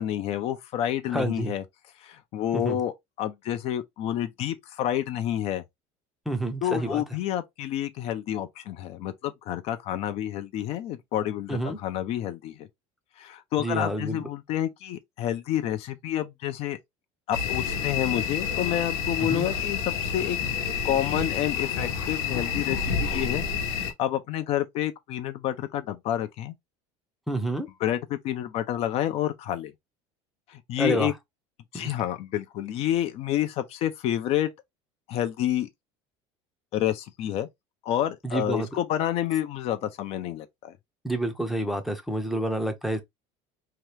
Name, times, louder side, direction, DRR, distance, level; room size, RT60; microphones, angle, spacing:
voice 1, 0.0-1.6 2.0-5.6 6.6-12.7 13.2-16.8 17.3-20.4 20.8-23.4 24.0-26.5 27.8-29.7 30.5-31.1 31.7-34.5 35.1-35.7 36.7-37.5 37.8-40.7, left 11 dB, 50° left, 0.4 m, -29 dB
voice 2, 1.1-1.5 2.5-2.8 6.3-7.0 11.5-11.8 13.6-14.3 19.3-19.5 27.3-27.7 30.8-31.1 31.7-31.9 38.2-38.7 41.0-43.0, right 1 dB, ahead, 0.5 m, -28 dB
sound 1, 17.3-23.9, left 6 dB, 90° left, 0.9 m, -29 dB
2.8 x 2.3 x 3.1 m
cardioid pair, 145°, 13 cm